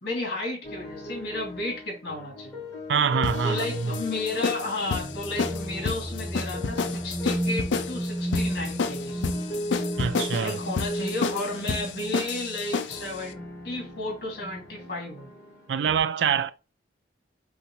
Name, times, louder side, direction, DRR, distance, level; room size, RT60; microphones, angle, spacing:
voice 1, 0.0-2.6 3.4-9.2 10.4-15.3, left 2 dB, 60° left, 2.4 m, -33 dB
sound 1, 0.6-16.0, left 2 dB, 15° left, 1.9 m, -40 dB
voice 2, 2.9-4.0 10.0-10.6 15.7-16.5, right 6 dB, 80° right, 0.4 m, -25 dB
sound 2, 3.2-13.1, left 4 dB, 85° left, 0.4 m, -31 dB
sound 3, 5.0-12.7, right 1 dB, 5° right, 0.4 m, -33 dB
5.6 x 2.5 x 3.0 m
head